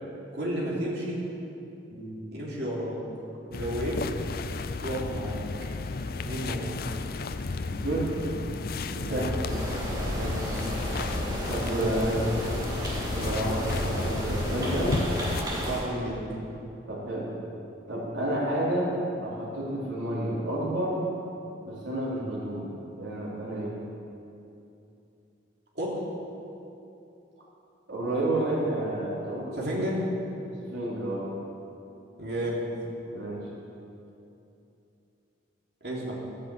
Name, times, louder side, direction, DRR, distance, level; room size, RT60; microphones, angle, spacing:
voice 1, 0.3-1.2 2.3-3.0 3.5-4.0 4.8-5.4 6.2-6.7 9.1-9.4 10.1-10.4 11.7-12.1 15.5-16.2 25.7-26.0 29.6-30.0 32.2-32.7 35.8-36.2, equal, 55° right, -5 dB, 3.2 m, -32 dB
voice 2, 1.9-2.2 7.7-8.2 8.9-9.4 11.5-12.3 13.1-15.0 16.9-17.3 17.9-18.9 19.2-21.1 21.6-23.8 27.9-29.7 30.6-31.3 33.1-33.5, right 1 dB, 80° right, -6 dB, 3.8 m, -30 dB
sound 1, 3.5-15.4, left 3 dB, 50° left, 0.5 m, -33 dB
sound 2, 9.5-15.8, equal, 20° right, 2.5 m, -33 dB
12.0 x 10.0 x 8.2 m, 2.8 s
head